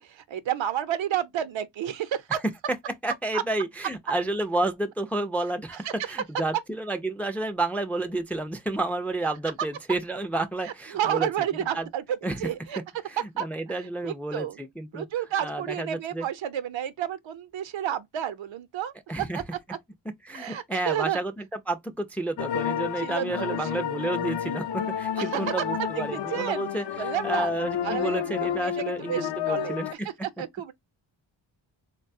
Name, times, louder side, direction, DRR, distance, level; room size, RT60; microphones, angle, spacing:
voice 1, 0.0-2.4 3.3-3.4 10.6-12.8 13.4-13.5 14.0-14.6 14.9-19.4 20.3-21.2 23.0-23.9 25.2-25.4 26.1-26.7 27.0-27.5 27.8-29.8 30.4-30.7, right 10 dB, 75° right, 0.7 m, -31 dB
voice 2, 3.0-11.3 11.7-11.9 12.2-12.4 13.1-15.1 15.4-16.3 19.1-19.4 20.2-29.9, right 2 dB, 5° left, 0.3 m, -30 dB
sound 1, 22.4-29.9, left 10 dB, 60° left, 0.5 m, -31 dB
3.9 x 2.2 x 2.5 m
wide cardioid pair, 125°, 46 cm